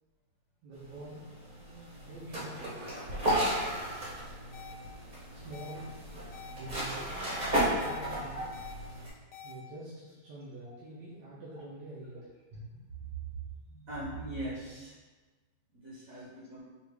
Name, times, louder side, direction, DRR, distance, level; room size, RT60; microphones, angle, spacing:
voice 1, 0.6-2.8 5.3-6.2 6.5-7.3 7.7-8.4 9.4-12.2, right 1 dB, 85° right, -7 dB, 1.4 m, -46 dB
sound 1, 0.8-9.1, right 1 dB, 35° right, 0.8 m, -34 dB
sound 2, 4.5-4.7 5.5-5.7 6.3-6.5 7.3-8.0 8.5-8.7 9.3-9.5, left 8 dB, 75° left, 1.2 m, -47 dB
voice 2, 12.5-12.8 13.7-15.0 15.7-16.6, right 1 dB, 60° right, -6 dB, 1.1 m, -41 dB
4.8 x 2.5 x 3.3 m, 1.3 s
omnidirectional pair, 1.8 m